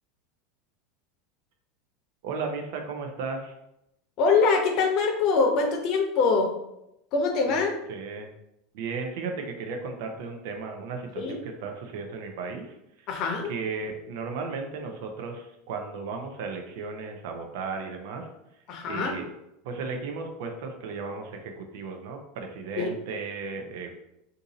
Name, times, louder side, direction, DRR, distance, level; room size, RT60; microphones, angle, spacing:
voice 1, 2.2-3.5 7.5-7.6 7.9-8.3 8.7-13.1 13.5-18.3 18.9-19.3 19.6-23.9, right 4 dB, 70° right, 4 dB, 0.6 m, -35 dB
voice 2, 4.2-6.5 7.1-7.7 11.2-11.4 13.1-13.5 18.7-19.1 22.8-22.9, left 4 dB, 50° left, 3 dB, 0.7 m, -23 dB
2.6 x 2.6 x 3.9 m, 0.84 s
supercardioid pair, 130°, 0 cm